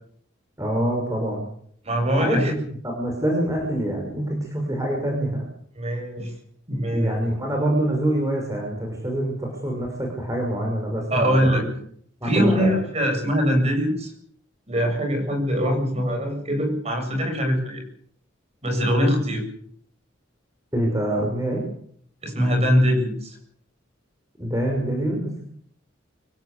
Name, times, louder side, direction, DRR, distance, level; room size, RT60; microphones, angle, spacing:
voice 1, 0.6-1.4 2.2-2.6 2.8-5.4 6.9-11.7 12.2-12.7 20.7-21.6 24.4-25.4, right 1 dB, 15° right, 1 dB, 6.0 m, -25 dB
voice 2, 1.8-2.5 5.8-6.3 6.7-7.2 11.1-11.6 12.2-14.1 14.7-17.8 18.6-19.4 22.2-23.4, equal, 30° right, 4 dB, 7.9 m, -22 dB
25.5 x 16.5 x 8.4 m, 0.63 s
head